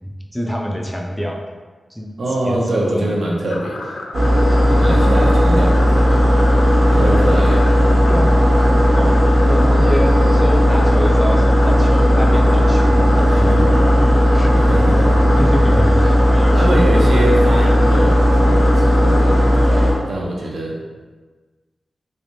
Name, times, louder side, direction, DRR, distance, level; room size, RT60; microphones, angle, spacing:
voice 1, 0.0-1.4 1.9-2.1 2.4-3.6 4.7-5.1 8.1-8.4 8.9-13.7 14.3-14.6 15.4-16.8, equal, ahead, 1 dB, 0.3 m, -26 dB
voice 2, 2.2-4.0 4.7-6.3 6.9-7.7 13.2-13.8 14.5-15.2 16.5-20.8, right 1 dB, 80° right, -2 dB, 0.7 m, -24 dB
sound 1, 3.5-19.6, left 3 dB, 85° left, 0.3 m, -32 dB
sound 2, 4.1-19.9, equal, 40° right, 1.2 m, -14 dB
3.4 x 3.3 x 2.6 m, 1.3 s
wide cardioid pair, 180°, 0 cm